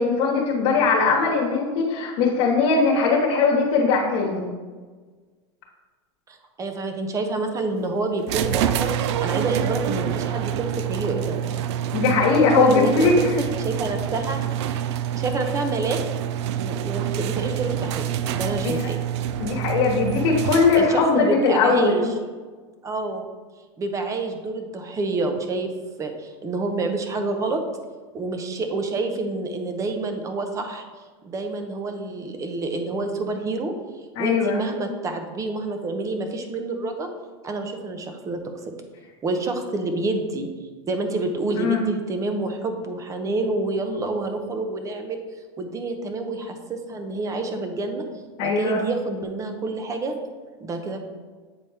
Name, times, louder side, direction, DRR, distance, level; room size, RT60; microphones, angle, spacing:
voice 1, 0.0-4.4 11.9-13.1 18.6-18.8 19.4-22.1 34.1-34.6 41.5-41.8 48.4-48.8, left 4 dB, 65° left, -3 dB, 1.2 m, -20 dB
voice 2, 6.3-11.4 12.6-13.1 13.6-14.5 15.1-16.0 16.6-19.0 20.7-22.1 22.8-23.2 23.8-25.7 26.0-27.6 28.1-30.9 31.2-33.7 34.2-37.1 37.4-38.4 39.2-40.5 40.9-45.2 45.6-48.0 48.4-50.2 50.6-51.0, right 3 dB, 20° right, 6 dB, 0.8 m, -28 dB
sound 1, 8.3-21.1, right 10 dB, 70° right, 0.4 m, -27 dB
8.0 x 4.2 x 3.4 m, 1.4 s
supercardioid pair, 135°, 15 cm